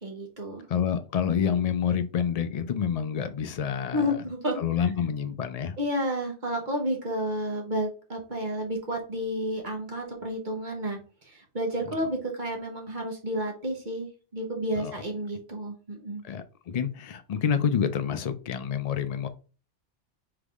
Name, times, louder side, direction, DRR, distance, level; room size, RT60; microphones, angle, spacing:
voice 1, 0.0-0.6 3.9-4.6 5.8-16.2, equal, 45° right, 1 dB, 1.2 m, -31 dB
voice 2, 0.7-4.2 4.6-5.8 14.8-15.0 16.2-19.3, left 7 dB, 65° left, 10 dB, 0.4 m, -28 dB
3.9 x 3.5 x 3.5 m, 0.36 s
omnidirectional pair, 1.2 m